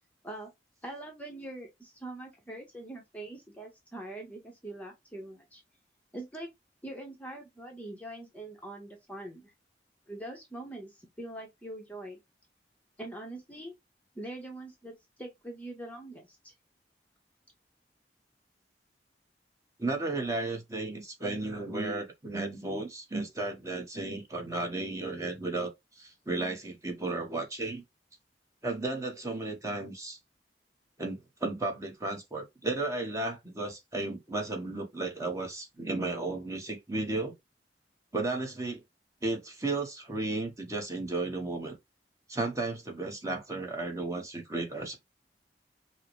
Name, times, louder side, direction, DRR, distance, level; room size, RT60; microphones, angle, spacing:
voice 1, 0.8-5.6 6.1-6.5 6.8-9.5 10.1-12.2 13.0-13.7 14.1-16.5, right 1 dB, 10° left, 0.8 m, -43 dB
voice 2, 19.8-25.7 26.0-27.8 28.6-30.2 31.0-37.3 38.1-38.8 39.2-41.7 42.3-45.0, right 2 dB, 20° right, 1.0 m, -34 dB
5.5 x 2.1 x 3.0 m
head